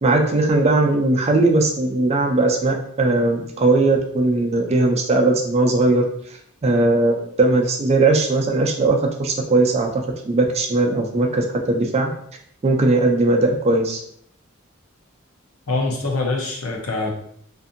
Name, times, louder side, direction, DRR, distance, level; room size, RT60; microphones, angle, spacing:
voice 1, 0.0-6.0 6.6-12.1 12.6-14.0, right 2 dB, 30° right, 2 dB, 0.4 m, -19 dB
voice 2, 15.7-17.2, left 3 dB, 75° left, 0 dB, 0.7 m, -24 dB
2.6 x 2.6 x 2.5 m, 0.68 s
head